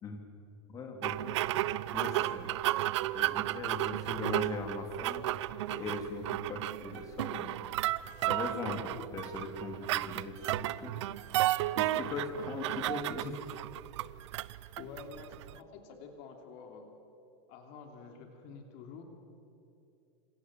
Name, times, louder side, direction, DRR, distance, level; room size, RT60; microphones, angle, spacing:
voice 1, 0.7-2.5 3.1-5.3 5.7-7.7 8.3-11.2 11.7-13.6, left 3 dB, 20° left, 4 dB, 3.1 m, -40 dB
sound 1, 1.0-15.6, right 15 dB, 70° right, 0.7 m, -33 dB
voice 2, 14.8-16.9 17.5-19.0, left 5 dB, 45° left, 4 dB, 3.1 m, -48 dB
27.0 x 26.0 x 7.8 m, 2.7 s
supercardioid pair, 170°, 15 cm